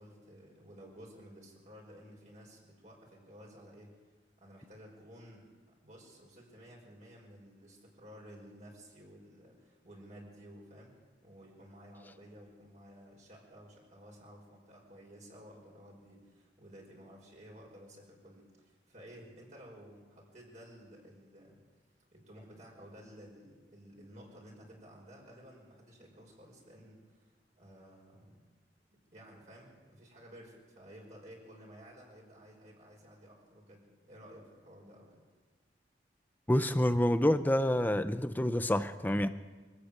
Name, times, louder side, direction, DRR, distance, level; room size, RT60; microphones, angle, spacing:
voice 1, 0.0-4.0 4.4-5.5 5.8-10.9 11.2-21.6 22.1-28.4 28.9-35.2, equal, 45° right, -1 dB, 5.4 m, -54 dB
voice 2, 36.5-39.3, left 1 dB, 10° left, 11 dB, 0.6 m, -28 dB
23.5 x 13.5 x 8.9 m, 1.4 s
head